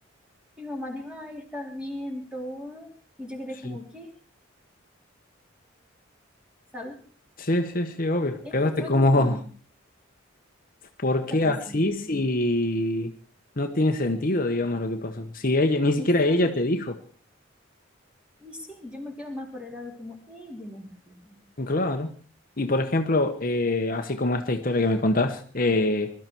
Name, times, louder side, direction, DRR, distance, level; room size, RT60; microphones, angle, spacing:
voice 1, 0.6-2.9 3.2-4.1 6.7-7.0 8.2-9.4 11.2-11.9 16.0-16.4 18.4-21.4, left 1 dB, 5° right, 2 dB, 3.2 m, -38 dB
voice 2, 7.4-9.4 11.0-13.1 13.6-17.0 21.6-22.1 22.6-26.1, left 2 dB, 45° left, 6 dB, 1.1 m, -24 dB
21.5 x 13.0 x 4.5 m, 0.40 s
head